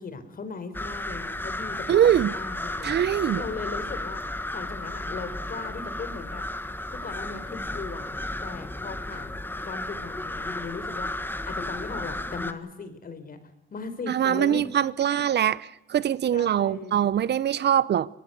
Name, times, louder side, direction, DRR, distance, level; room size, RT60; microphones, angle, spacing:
voice 1, 0.0-2.9 3.3-6.4 6.9-8.1 8.4-11.1 11.4-13.4 13.7-14.6 16.3-17.0, left 4 dB, 45° left, 4.7 m, -38 dB
sound 1, 0.7-12.5, left 1 dB, 10° left, 1.6 m, -33 dB
voice 2, 1.9-2.3 2.8-3.4 14.1-18.1, right 10 dB, 60° right, 0.8 m, -23 dB
24.0 x 19.5 x 8.2 m
cardioid pair, 90°, 20 cm